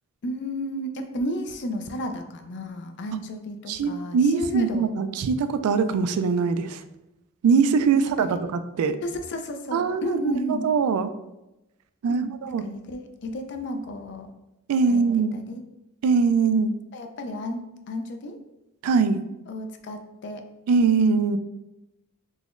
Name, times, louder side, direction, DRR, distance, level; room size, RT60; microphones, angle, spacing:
voice 1, 0.2-4.9 7.9-8.4 9.0-10.7 12.1-12.3 12.6-14.3 14.9-15.0 15.3-15.6 16.9-18.4 19.5-20.4, equal, 55° left, 6 dB, 0.4 m, -32 dB
voice 2, 3.7-6.8 7.4-9.0 9.7-11.1 12.0-12.6 14.7-15.3 16.0-16.7 18.8-19.2 20.7-21.4, right 5 dB, 75° right, 11 dB, 0.3 m, -22 dB
3.9 x 2.9 x 2.4 m, 0.94 s
head